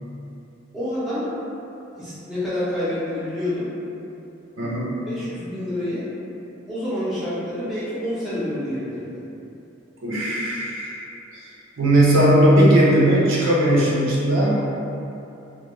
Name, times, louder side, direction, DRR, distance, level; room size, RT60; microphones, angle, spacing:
voice 1, 0.7-1.3 1.9-3.7 5.1-6.1 6.7-9.2, left 1 dB, ahead, -13 dB, 0.6 m, -28 dB
voice 2, 4.6-5.0 10.0-11.0 11.3-14.6, right 1 dB, 85° right, -6 dB, 0.6 m, -18 dB
2.2 x 2.2 x 3.0 m, 2.9 s
head